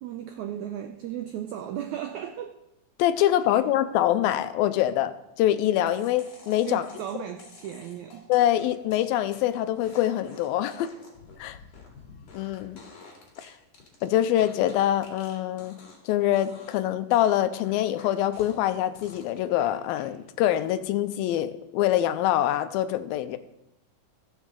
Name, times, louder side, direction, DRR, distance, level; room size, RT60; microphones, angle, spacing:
voice 1, 0.0-2.5 6.7-8.3, right 10 dB, 90° right, 6 dB, 1.7 m, -35 dB
voice 2, 3.0-5.1 5.4-6.9 8.3-10.9 11.4-11.6 12.3-12.8 13.4-13.5 14.0-15.8 16.1-23.4, left 12 dB, 90° left, 11 dB, 2.4 m, -24 dB
sound 1, 5.9-16.1 16.3-16.8 17.1-20.1 20.5-20.9, left 3 dB, 50° left, 3.2 m, -50 dB
16.5 x 7.3 x 3.8 m, 0.89 s
omnidirectional pair, 4.2 m